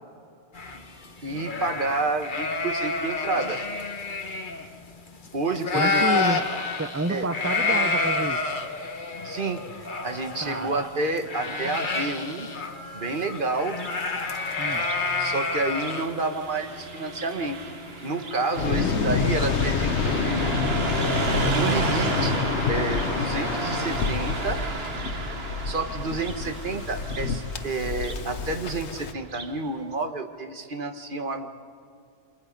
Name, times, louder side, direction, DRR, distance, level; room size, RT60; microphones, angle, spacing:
sound 1, 0.5-5.3 5.5-18.5, left 3 dB, 50° left, 1.5 m, -29 dB
voice 1, 1.2-3.6 5.3-6.3 7.1-7.3 9.2-12.5 12.9-13.8 15.2-17.6 18.0-20.5 21.5-22.4 22.7-24.6 25.6-31.5, right 3 dB, 50° right, 6 dB, 1.5 m, -29 dB
voice 2, 5.7-8.5 10.4-10.8 14.6-14.9 18.7-19.3, right 2 dB, 20° right, 12 dB, 0.4 m, -30 dB
Car passing by, 13.6-29.6, right 4 dB, 65° right, 1.6 m, -33 dB
Waves surf, 18.6-29.1, left 6 dB, 85° left, 1.3 m, -28 dB
29.0 x 26.0 x 5.3 m, 2.5 s
omnidirectional pair, 1.1 m